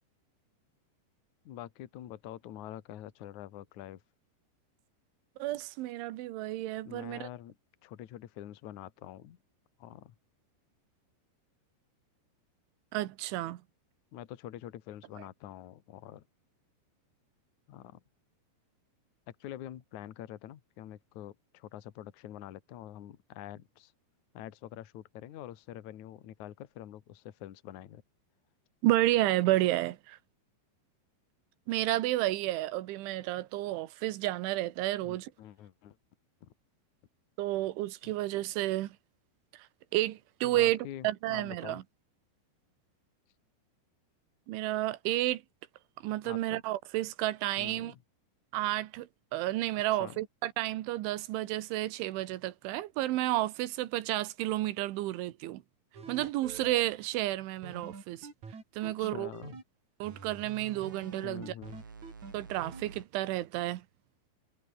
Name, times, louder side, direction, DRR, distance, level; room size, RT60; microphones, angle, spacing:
voice 1, 1.4-4.0 6.8-7.6 7.8-9.4 9.8-10.1 14.1-16.2 17.7-18.0 19.3-23.9 24.3-28.0 35.0-36.0 36.4-36.5 38.0-38.2 40.4-41.8 46.2-46.6 47.6-48.0 50.0-50.2 58.8-59.6 61.2-61.8, left 12 dB, 55° left, 2.3 m, -46 dB
voice 2, 5.4-7.3 12.9-13.6 28.8-30.2 31.7-35.3 37.4-39.0 39.9-41.8 44.5-45.4 46.0-47.9 48.5-55.6 56.1-58.3 58.8-59.3 60.0-61.5 62.3-63.8, right 16 dB, 85° right, 3.7 m, -31 dB
sound 1, 55.9-56.8 57.6-59.6 60.0-63.0, right 5 dB, 40° right, 6.0 m, -46 dB
omnidirectional pair, 5.3 m